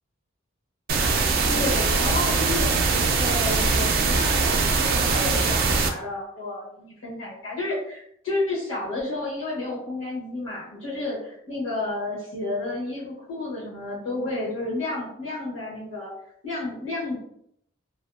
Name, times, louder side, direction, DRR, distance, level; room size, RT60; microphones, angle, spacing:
sound 1, 0.9-5.9, right 4 dB, 50° right, 0.3 m, -22 dB
voice 1, 1.5-2.8 3.1-16.1 16.4-17.2, left 2 dB, 80° left, -7 dB, 0.9 m, -31 dB
2.6 x 2.4 x 2.2 m, 0.71 s
head